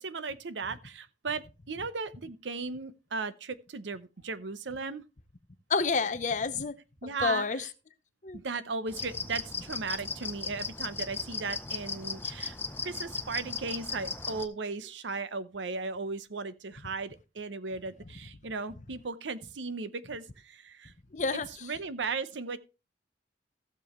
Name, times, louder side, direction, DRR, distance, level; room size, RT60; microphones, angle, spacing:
voice 1, 0.0-5.0 7.0-7.7 8.3-12.6 12.8-20.9 21.6-22.6, right 4 dB, 80° right, 0.7 m, -36 dB
voice 2, 5.7-6.8 7.0-7.7 8.2-8.4 21.1-21.5, left 4 dB, 45° left, 0.8 m, -29 dB
sound 1, 8.9-14.5, left 4 dB, 10° left, 0.6 m, -37 dB
15.0 x 6.9 x 3.1 m
head